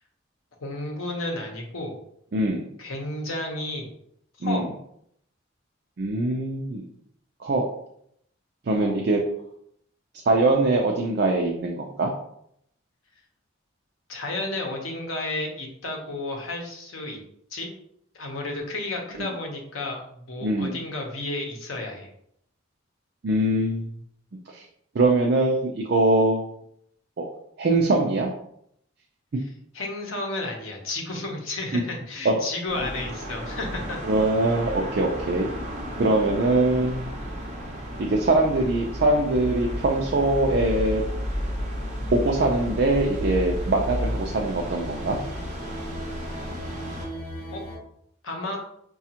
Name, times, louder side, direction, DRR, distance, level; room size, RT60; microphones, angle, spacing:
voice 1, 0.6-1.9 2.8-3.9 4.4-4.7 8.8-8.9 14.1-17.2 17.5-17.7 18.1-22.1 29.7-34.0 46.2-46.4 47.5-47.6 48.2-48.6, left 2 dB, 85° left, 1 dB, 0.8 m, -32 dB
voice 2, 2.3-2.7 4.4-4.7 6.0-6.9 7.4-7.7 8.7-9.2 10.3-12.1 19.2-19.3 20.4-20.7 23.2-23.9 24.5-24.6 24.9-26.5 27.2-27.3 27.6-28.3 31.7-31.8 32.2-32.4 34.1-35.5 36.0-37.1 38.0-41.0 42.1-45.2, right 2 dB, 50° right, 0 dB, 0.4 m, -22 dB
sound 1, 32.7-47.1, equal, 35° right, 0.8 m, -35 dB
sound 2, 38.7-47.8, equal, 65° left, 1.2 m, -33 dB
4.9 x 2.3 x 2.8 m, 0.72 s
head